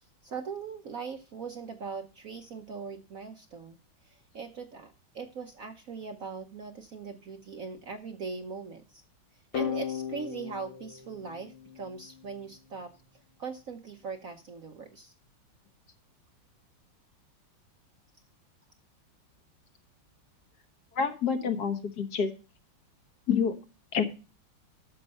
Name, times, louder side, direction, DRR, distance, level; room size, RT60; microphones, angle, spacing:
voice 1, 0.2-3.8 4.0-9.0 9.3-15.1, right 5 dB, 55° right, 6 dB, 1.0 m, -40 dB
sound 1, 9.5-12.3, left 8 dB, 90° left, 2.4 m, -36 dB
voice 2, 20.9-22.3 23.3-23.5 23.9-24.0, left 6 dB, 55° left, 7 dB, 1.6 m, -27 dB
11.0 x 6.8 x 5.3 m, 0.34 s
omnidirectional pair, 2.2 m